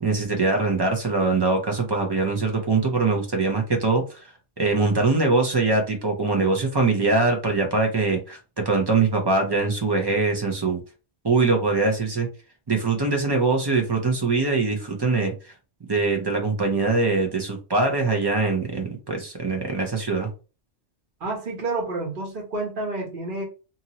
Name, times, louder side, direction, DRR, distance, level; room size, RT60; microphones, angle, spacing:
voice 1, 0.0-4.2 4.6-10.8 11.2-12.3 12.7-15.3 15.9-20.3, right 3 dB, 30° right, 3 dB, 0.5 m, -22 dB
voice 2, 21.2-23.4, right 2 dB, 50° right, 0 dB, 1.2 m, -29 dB
2.8 x 2.6 x 2.9 m, 0.33 s
omnidirectional pair, 1.2 m